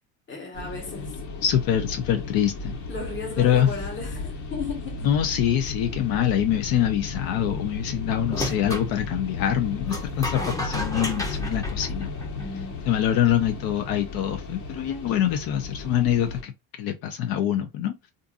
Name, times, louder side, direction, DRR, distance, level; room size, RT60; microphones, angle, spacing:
voice 1, 0.3-1.1 2.4-2.5 2.9-5.1 12.4-12.9, left 3 dB, 35° left, 1.2 m, -35 dB
sound 1, 0.5-16.4, left 3 dB, 60° left, 1.2 m, -34 dB
voice 2, 1.4-2.7 3.4-3.7 5.0-12.1 12.9-16.5 16.8-18.1, left 10 dB, 80° left, 0.6 m, -24 dB
sound 2, 8.3-8.9 9.9-12.6, left 1 dB, 10° left, 0.5 m, -33 dB
2.5 x 2.5 x 2.4 m
cardioid pair, 130°, 35 cm